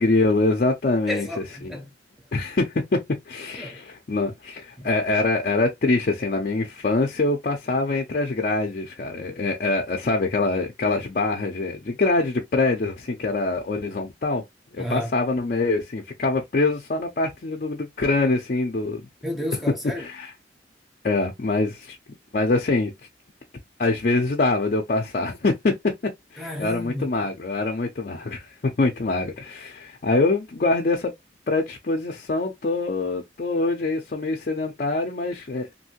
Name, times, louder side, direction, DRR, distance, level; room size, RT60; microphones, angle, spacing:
voice 1, 0.0-1.3 1.6-1.8 2.3-3.0 3.3-14.4 14.7-19.1 20.0-20.3 21.0-22.0 22.3-22.9 23.8-25.7 26.3-31.1 31.5-35.7, left 3 dB, 50° left, 0.5 m, -24 dB
voice 2, 1.1-1.9 3.6-3.8 4.8-4.9 14.8-15.1 19.2-20.0 26.4-27.4, left 1 dB, ahead, 0.8 m, -32 dB
2.7 x 2.6 x 2.8 m
head